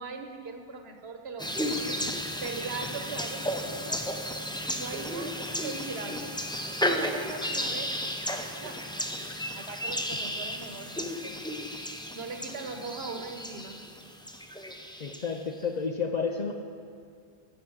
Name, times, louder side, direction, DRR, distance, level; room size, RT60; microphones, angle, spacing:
voice 1, 0.0-4.0 4.7-6.4 6.9-8.2 8.6-8.8 9.5-11.4 12.1-13.8, right 4 dB, 80° right, 5 dB, 1.2 m, -40 dB
sound 1, 1.4-15.4, equal, 5° left, 0.5 m, -33 dB
voice 2, 15.0-16.5, left 5 dB, 50° left, 4 dB, 0.7 m, -31 dB
14.5 x 6.1 x 7.8 m, 2.3 s
omnidirectional pair, 1.0 m